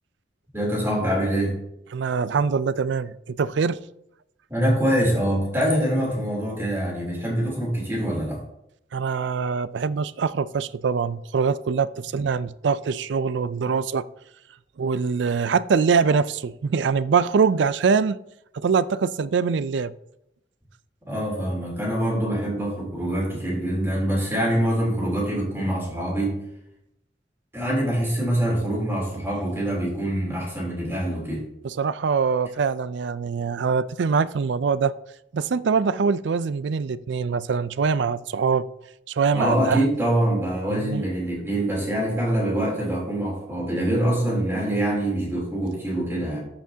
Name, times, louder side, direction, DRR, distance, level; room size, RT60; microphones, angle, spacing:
voice 1, 0.5-1.6 4.5-8.4 21.1-26.4 27.5-31.4 39.3-46.4, right 1 dB, 15° right, 3.2 m, -24 dB
voice 2, 1.9-3.8 8.9-14.1 14.8-18.2 18.5-19.9 31.6-34.9 35.3-38.7 39.1-39.8 40.7-41.0, right 5 dB, 70° right, 0.4 m, -23 dB
13.5 x 5.9 x 2.8 m
head